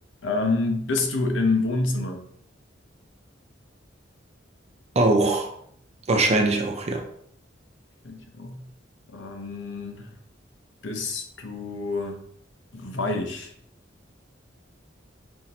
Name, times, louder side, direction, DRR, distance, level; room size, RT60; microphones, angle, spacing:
voice 1, 0.2-2.3 8.0-8.6 9.1-10.1 10.8-12.2 12.7-13.5, left 3 dB, 70° left, 3 dB, 0.8 m, -27 dB
voice 2, 5.0-5.5 6.1-7.1, right 2 dB, 35° right, 4 dB, 0.5 m, -21 dB
5.7 x 2.6 x 2.9 m, 0.65 s
head